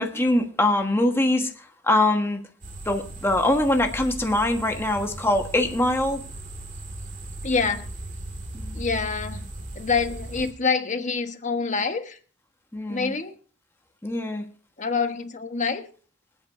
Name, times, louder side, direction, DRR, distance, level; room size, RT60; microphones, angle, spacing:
voice 1, 0.0-2.4 2.8-6.2 8.5-8.8 12.7-13.1 14.0-14.5, left 1 dB, 15° left, 3 dB, 1.4 m, -23 dB
sound 1, 2.6-10.5, right 1 dB, 45° right, 2.2 m, -37 dB
voice 2, 7.4-7.9 8.7-12.2 12.9-13.3 14.8-15.9, left 5 dB, 40° left, 7 dB, 1.3 m, -26 dB
26.0 x 8.8 x 2.7 m, 0.41 s
head